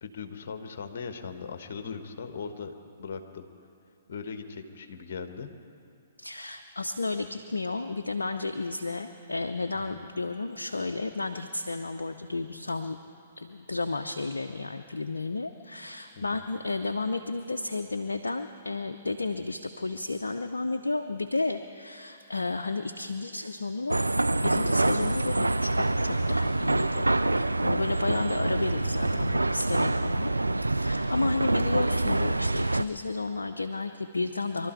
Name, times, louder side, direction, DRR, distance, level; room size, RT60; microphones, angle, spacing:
voice 1, 0.0-3.5 4.1-5.5 9.7-10.0 16.2-16.4 28.8-29.4, left 5 dB, 55° left, 7 dB, 1.4 m, -39 dB
voice 2, 6.2-13.0 13.4-24.0 24.4-34.7, left 3 dB, 80° left, 6 dB, 0.6 m, -32 dB
sound 1, 23.9-32.8, right 2 dB, 90° right, 0.4 m, -26 dB
23.5 x 12.5 x 4.6 m, 2.5 s
figure-of-eight pair, 120°, 0 cm